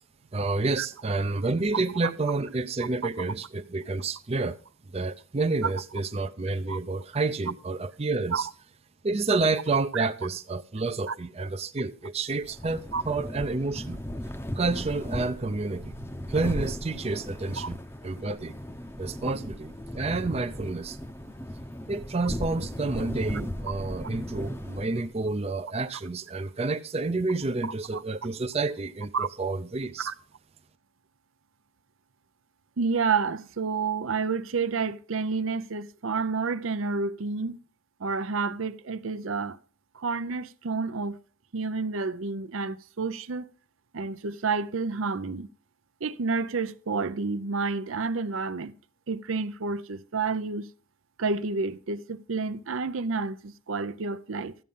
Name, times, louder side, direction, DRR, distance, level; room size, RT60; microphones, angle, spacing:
voice 1, 0.3-4.6 4.9-8.5 9.0-14.0 14.6-15.9 16.3-17.8 18.0-18.6 19.0-21.0 21.9-30.1, right 3 dB, 30° right, 0.5 m, -29 dB
sound 1, 12.4-25.2, equal, 10° left, 0.7 m, -37 dB
voice 2, 32.8-37.6 38.0-39.6 39.9-41.2 41.5-43.5 43.9-45.5 46.0-48.7 49.1-50.7 51.2-54.5, right 4 dB, 75° right, 0.7 m, -29 dB
13.5 x 8.5 x 5.4 m
head